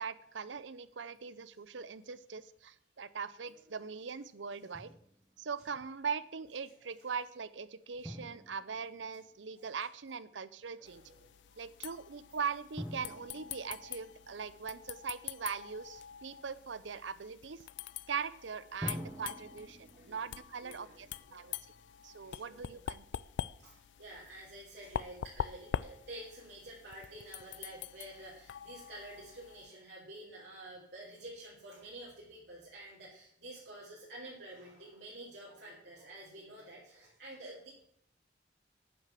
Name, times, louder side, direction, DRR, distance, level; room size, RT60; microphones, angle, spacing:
voice 1, 0.0-4.9 5.4-11.0 11.6-17.6 18.1-21.5 22.0-23.0, right 6 dB, 85° right, 16 dB, 0.7 m, -41 dB
voice 2, 3.4-3.7 10.7-11.6 18.7-18.8 19.8-20.2 20.6-21.0 21.3-21.8 22.2-22.6 23.6-37.7, right 1 dB, 65° right, -7 dB, 4.0 m, -50 dB
Drum, 4.7-5.5 8.0-9.8 12.8-15.2 18.8-22.0, equal, 10° right, 1.5 m, -48 dB
sound 1, 10.9-29.7, left 8 dB, 75° left, 0.4 m, -45 dB
9.6 x 6.7 x 7.5 m, 0.69 s
head